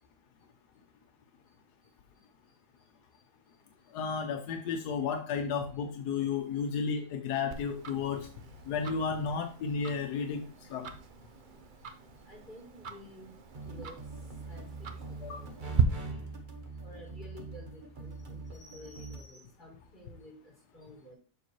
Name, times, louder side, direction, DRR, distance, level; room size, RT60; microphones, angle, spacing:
voice 1, 1.8-3.0 3.4-3.9 12.2-16.3 16.7-21.1, left 1 dB, 30° left, -4 dB, 4.2 m, -53 dB
voice 2, 3.9-8.3 8.7-10.4 10.7-10.9 15.2-15.5, left 6 dB, 85° left, 6 dB, 1.3 m, -33 dB
Tick-tock, 7.5-15.8, right 8 dB, 65° right, 0.5 m, -38 dB
sound 1, 13.5-19.2, right 3 dB, 35° right, 0.9 m, -43 dB
6.8 x 6.1 x 3.0 m, 0.37 s
omnidirectional pair, 1.7 m